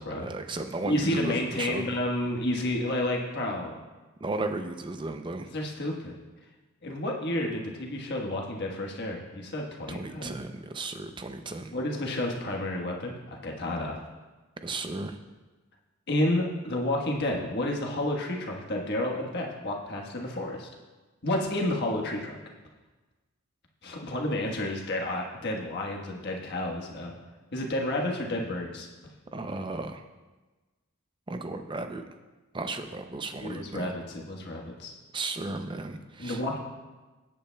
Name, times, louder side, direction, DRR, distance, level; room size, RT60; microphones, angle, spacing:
voice 1, 0.2-1.9 4.2-5.5 9.9-11.7 14.6-15.2 29.3-30.0 31.3-32.0 32.5-33.9 35.1-36.6, right 2 dB, 20° right, 7 dB, 0.5 m, -35 dB
voice 2, 0.8-3.8 5.5-6.1 6.8-10.4 11.7-13.2 13.4-14.0 16.1-20.7 21.2-22.3 23.8-27.1 27.5-28.9 33.4-34.9 36.2-36.6, left 1 dB, 50° left, 0 dB, 1.3 m, -30 dB
17.0 x 8.6 x 2.3 m, 1.2 s
head